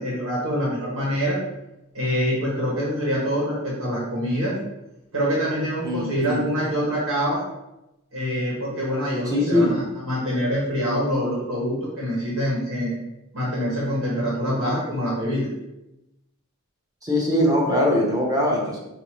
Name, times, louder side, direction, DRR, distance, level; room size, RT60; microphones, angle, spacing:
voice 1, 0.0-1.4 1.9-4.6 5.1-7.4 8.1-12.9 13.3-15.5, equal, 80° right, -5 dB, 1.4 m, -25 dB
voice 2, 5.8-6.5 9.3-9.9 17.0-18.8, left 1 dB, 15° right, -3 dB, 0.8 m, -22 dB
5.4 x 2.7 x 3.1 m, 0.93 s
head